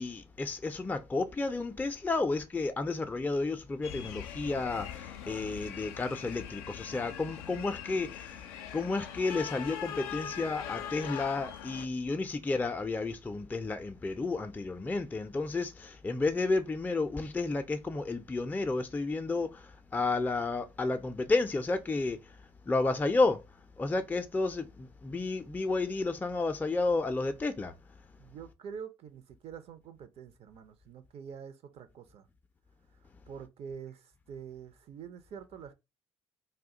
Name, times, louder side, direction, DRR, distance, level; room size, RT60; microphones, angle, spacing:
voice 1, 0.0-28.0, left 3 dB, 15° left, 0.4 m, -32 dB
sound 1, 3.8-11.9, left 9 dB, 75° left, 0.4 m, -42 dB
voice 2, 28.2-32.3 33.3-35.7, right 7 dB, 50° right, 0.5 m, -46 dB
2.3 x 2.1 x 3.7 m
hypercardioid pair, 55°, 13 cm